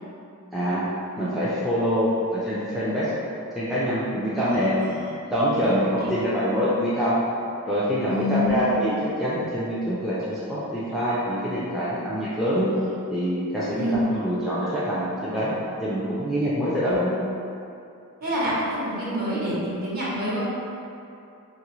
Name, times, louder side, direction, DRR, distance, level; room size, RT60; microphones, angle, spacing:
voice 1, 0.5-0.9 1.2-3.1 3.5-4.8 5.3-7.2 7.7-12.7 13.1-17.2, equal, ahead, -10 dB, 0.4 m, -25 dB
voice 2, 4.5-5.0 5.5-5.7 6.0-6.1 8.1-8.7 13.7-14.0 18.2-20.5, left 1 dB, 45° right, -9 dB, 1.0 m, -27 dB
3.2 x 2.5 x 3.0 m, 2.6 s
head